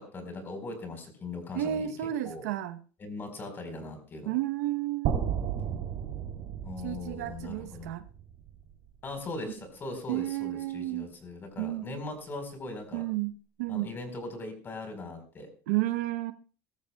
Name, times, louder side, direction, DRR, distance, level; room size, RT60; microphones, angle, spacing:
voice 1, 0.0-1.9 2.2-2.4 3.0-4.3 6.6-7.9 9.0-13.0 13.7-15.5, left 2 dB, 25° left, 4.3 m, -40 dB
voice 2, 1.5-2.8 4.2-5.2 6.8-8.1 10.1-11.1 11.6-12.0 12.9-13.3 13.6-13.9 15.7-16.3, right 14 dB, 90° right, 0.9 m, -32 dB
sound 1, 5.0-9.1, right 8 dB, 60° right, 2.2 m, -34 dB
20.5 x 13.5 x 2.3 m
supercardioid pair, 130°, 8 cm